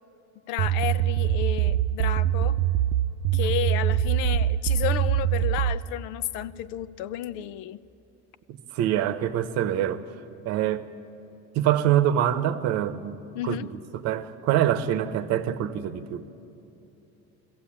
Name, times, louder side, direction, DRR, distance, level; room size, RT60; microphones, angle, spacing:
voice 1, 0.5-2.6 3.3-7.8 13.3-13.7, left 12 dB, 75° left, 0.7 m, -32 dB
sound 1, 0.6-5.8, right 11 dB, 85° right, 0.7 m, -24 dB
voice 2, 8.5-10.1 10.4-10.9 11.5-13.2 13.4-16.2, right 11 dB, 55° right, 0.9 m, -25 dB
22.0 x 15.0 x 8.6 m
cardioid pair, 160°, 31 cm